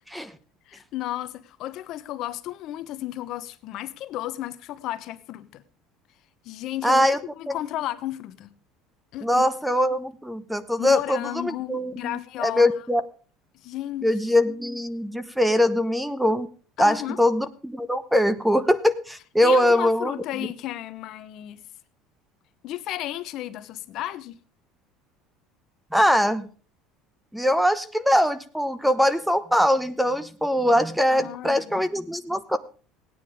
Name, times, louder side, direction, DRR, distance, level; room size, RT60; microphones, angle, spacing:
voice 1, 0.7-5.6 6.4-7.1 7.3-8.5 9.1-9.4 10.8-12.8 13.6-14.1 16.8-17.2 19.4-21.6 22.6-24.4 31.1-31.8, left 14 dB, 55° left, 0.9 m, -33 dB
voice 2, 6.8-7.2 7.5-7.6 9.2-13.0 14.0-16.5 16.8-20.1 25.9-26.5 27.3-32.6, equal, ahead, 0.9 m, -22 dB
17.0 x 9.6 x 5.0 m
cardioid pair, 130°, 0 cm